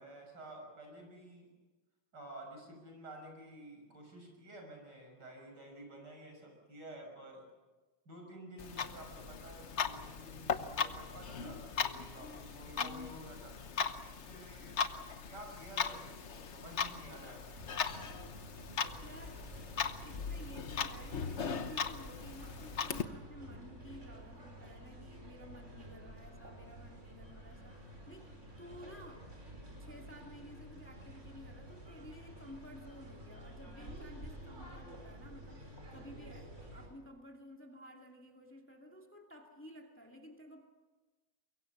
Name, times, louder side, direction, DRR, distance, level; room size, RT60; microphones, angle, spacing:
voice 1, 0.0-1.5 2.1-7.5 8.0-14.8 15.3-17.6, right 1 dB, 70° right, 2 dB, 6.8 m, -51 dB
Clock, 8.6-23.0, left 6 dB, 45° left, 1.2 m, -39 dB
sound 1, 17.5-36.9, right 1 dB, 40° right, 5.3 m, -51 dB
voice 2, 19.0-19.5 20.0-29.3 29.8-40.6, equal, 5° left, 2 dB, 2.2 m, -53 dB
23.5 x 23.0 x 7.2 m, 1.2 s
omnidirectional pair, 1.9 m